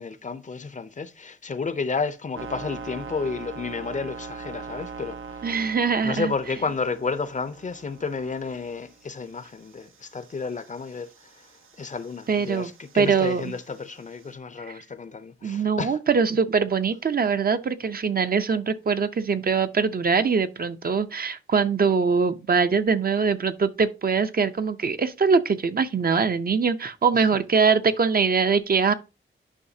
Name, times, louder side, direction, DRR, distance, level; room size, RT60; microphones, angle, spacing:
voice 1, 0.0-5.8 6.0-11.5 11.8-16.0 27.1-27.4, left 4 dB, 40° left, 0.5 m, -32 dB
sound 1, 2.3-14.3, right 5 dB, 85° right, 0.8 m, -43 dB
voice 2, 5.4-6.3 12.3-12.7 13.0-13.5 15.4-28.9, right 5 dB, 50° right, 0.6 m, -22 dB
9.9 x 5.6 x 2.7 m
wide cardioid pair, 165°, 20 cm